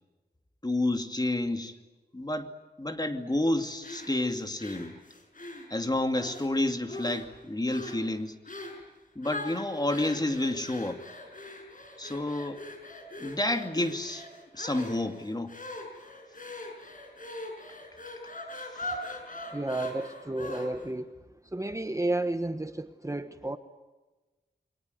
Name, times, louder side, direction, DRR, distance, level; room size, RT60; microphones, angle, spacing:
voice 1, 0.6-1.8 2.1-2.5 2.8-5.0 5.7-8.4 9.2-11.0 12.0-12.6 13.2-14.3 14.5-15.5 18.8-18.9, left 1 dB, 25° left, 6 dB, 2.5 m, -30 dB
sound 1, 3.8-6.5 6.9-7.4 7.7-8.0 8.5-8.8 9.2-20.9, left 1 dB, 50° left, 6.5 m, -41 dB
voice 2, 19.5-21.1 21.5-23.6, right 2 dB, 20° right, 8 dB, 1.2 m, -32 dB
28.5 x 24.0 x 8.1 m, 1.2 s
wide cardioid pair, 95°, 17 cm